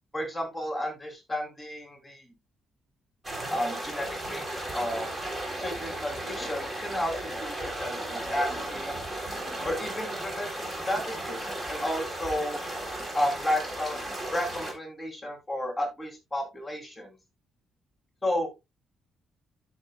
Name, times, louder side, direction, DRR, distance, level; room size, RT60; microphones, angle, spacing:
voice 1, 0.1-2.3 3.5-5.1 5.6-9.1 9.6-12.6 13.1-14.0 14.3-17.1 18.2-18.5, left 1 dB, 15° left, 4 dB, 3.6 m, -32 dB
sound 1, 3.2-14.7, right 1 dB, 20° right, 3.8 m, -35 dB
13.0 x 6.4 x 2.4 m, 0.22 s
cardioid pair, 90°, 0 cm